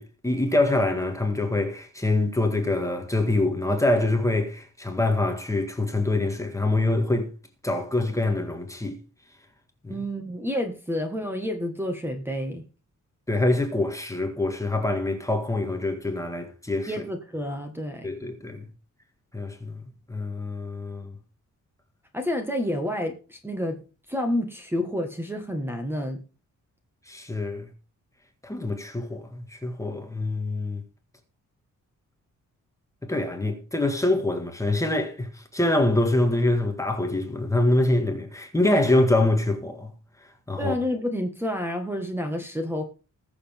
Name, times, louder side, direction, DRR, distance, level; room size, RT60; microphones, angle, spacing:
voice 1, 0.0-7.3 7.6-9.0 9.8-10.0 13.3-16.9 18.0-18.7 19.3-19.8 20.1-21.1 27.1-27.7 28.4-30.8 33.0-39.9 40.5-40.7, left 2 dB, 10° left, 1.7 m, -25 dB
voice 2, 9.9-12.6 16.9-18.1 22.1-23.8 24.1-26.2 40.6-42.8, left 1 dB, 5° right, 1.6 m, -29 dB
20.5 x 7.0 x 3.6 m
wide cardioid pair, 170°, 31 cm